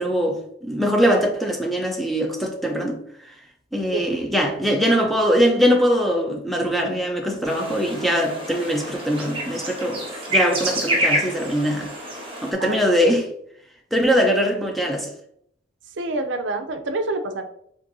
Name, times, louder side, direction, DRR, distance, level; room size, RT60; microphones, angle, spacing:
voice 1, 0.0-3.3 3.7-10.0 10.3-11.9 12.4-13.3 13.9-15.1, equal, ahead, 0.5 m, -22 dB
sound 1, 7.4-12.5, equal, 30° right, 1.1 m, -27 dB
voice 2, 15.9-17.4, right 2 dB, 75° right, 0.5 m, -27 dB
7.4 x 2.6 x 2.6 m
head